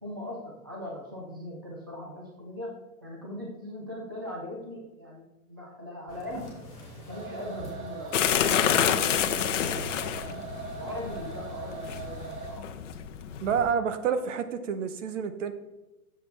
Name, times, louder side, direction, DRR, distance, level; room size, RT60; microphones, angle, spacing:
voice 1, 0.0-6.6 7.0-10.4 10.8-12.7, left 1 dB, 15° right, -2 dB, 0.4 m, -40 dB
sound 1, 6.1-10.7, left 1 dB, 10° left, 3.0 m, -47 dB
sound 2, 7.1-12.8, right 5 dB, 70° right, 3.6 m, -41 dB
sound 3, 8.1-13.7, left 9 dB, 55° left, 0.8 m, -28 dB
voice 2, 13.4-15.5, right 7 dB, 55° right, 11 dB, 1.0 m, -28 dB
12.5 x 7.7 x 3.5 m, 1.1 s
hypercardioid pair, 165°, 45 cm